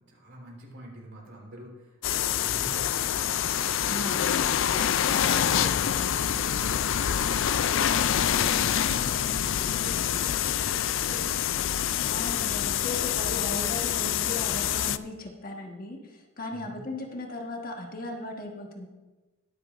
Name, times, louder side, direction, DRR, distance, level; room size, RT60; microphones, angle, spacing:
voice 1, 0.0-11.3 16.5-16.8, right 1 dB, 60° right, -2 dB, 4.0 m, -45 dB
sound 1, 2.0-15.0, left 10 dB, 65° left, 0.4 m, -26 dB
voice 2, 12.1-18.9, left 2 dB, 45° left, 1 dB, 1.4 m, -37 dB
22.0 x 8.3 x 2.6 m, 1.2 s
head